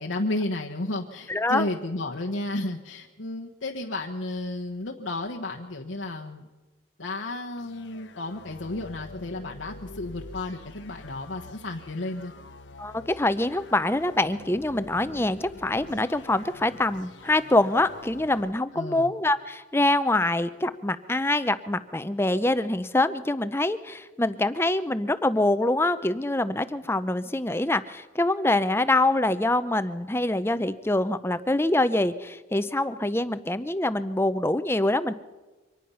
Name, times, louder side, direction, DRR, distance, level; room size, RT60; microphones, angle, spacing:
voice 1, 0.0-6.5 7.0-12.3 18.7-19.1, left 2 dB, 90° left, 1 dB, 1.2 m, -32 dB
voice 2, 1.3-1.7 12.8-35.1, left 2 dB, 10° left, 13 dB, 0.6 m, -25 dB
sound 1, 7.6-18.6, left 2 dB, 70° left, 1.0 m, -46 dB
24.5 x 19.0 x 5.6 m, 1.2 s
head